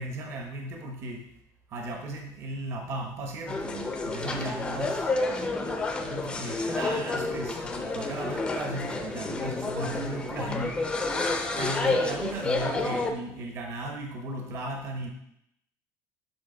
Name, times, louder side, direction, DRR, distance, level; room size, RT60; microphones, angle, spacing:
voice 1, 0.0-1.3 1.7-5.1 6.0-15.1, right 2 dB, 40° right, 3 dB, 0.9 m, -36 dB
sound 1, 3.5-13.1, left 3 dB, 10° left, 0.5 m, -30 dB
8.0 x 3.9 x 3.8 m, 0.77 s
cardioid pair, 170°, 7 cm